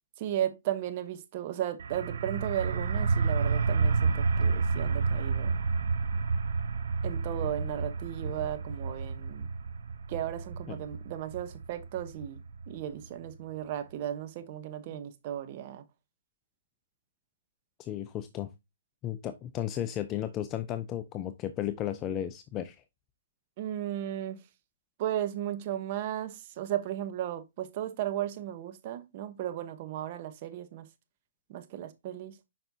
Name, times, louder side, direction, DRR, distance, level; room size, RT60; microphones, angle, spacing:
voice 1, 0.2-5.6 7.0-9.5 10.1-12.4 12.7-15.8 23.6-24.4 25.0-30.9 31.5-32.4, right 11 dB, 40° right, 1.0 m, -35 dB
sound 1, 1.8-13.3, right 4 dB, 70° right, 0.8 m, -30 dB
voice 2, 17.8-18.5 19.0-22.8, left 11 dB, 25° left, 0.5 m, -34 dB
7.1 x 5.4 x 2.7 m
hypercardioid pair, 140°, 0 cm